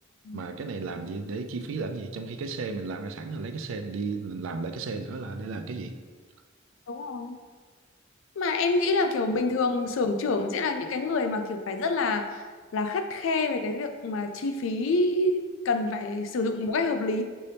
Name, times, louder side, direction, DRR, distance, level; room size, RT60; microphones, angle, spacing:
voice 1, 0.3-6.0, right 4 dB, 75° right, 7 dB, 0.4 m, -34 dB
voice 2, 6.9-7.4 8.4-12.4 12.7-17.2, left 3 dB, 75° left, 6 dB, 0.4 m, -27 dB
5.3 x 2.8 x 3.3 m, 1.5 s
head